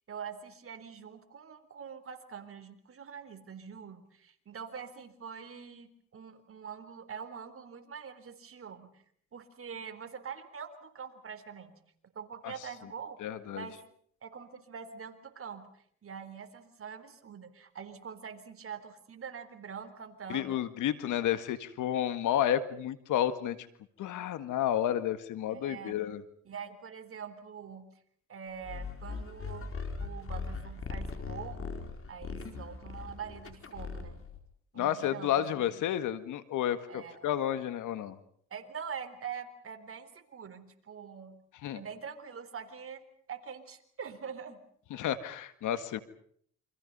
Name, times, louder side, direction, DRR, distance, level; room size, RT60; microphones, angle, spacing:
voice 1, 0.1-9.0 9.3-11.8 12.1-13.2 13.5-13.8 14.2-20.6 25.5-26.0 26.4-27.9 28.3-29.7 30.0-31.7 32.1-34.2 34.7-35.6 36.9-37.2 38.5-41.4 41.7-44.6, right 7 dB, 45° right, 8 dB, 3.9 m, -44 dB
voice 2, 13.2-13.7 20.3-23.6 24.0-26.2 34.8-38.2 41.6-41.8 44.9-46.0, left 11 dB, 80° left, 12 dB, 2.0 m, -31 dB
sound 1, 28.6-34.4, left 4 dB, 45° left, 4.6 m, -40 dB
29.0 x 26.0 x 5.5 m, 0.62 s
cardioid pair, 90°, 30 cm